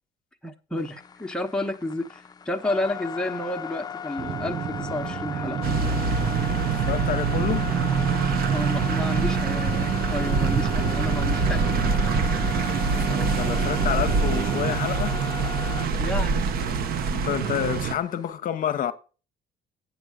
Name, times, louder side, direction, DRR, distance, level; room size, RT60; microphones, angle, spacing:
voice 1, 0.4-5.6 8.5-11.7 16.0-16.5, left 1 dB, 5° left, 0.9 m, -31 dB
sound 1, 0.8-18.3, left 7 dB, 25° left, 0.6 m, -37 dB
sound 2, 4.2-14.8, right 9 dB, 35° right, 0.4 m, -30 dB
sound 3, 5.6-17.9, right 4 dB, 65° right, 0.8 m, -25 dB
voice 2, 6.9-7.7 12.6-15.2 16.3-16.4 17.1-18.9, left 10 dB, 55° left, 0.8 m, -29 dB
8.3 x 6.3 x 4.9 m
cardioid pair, 110°, 17 cm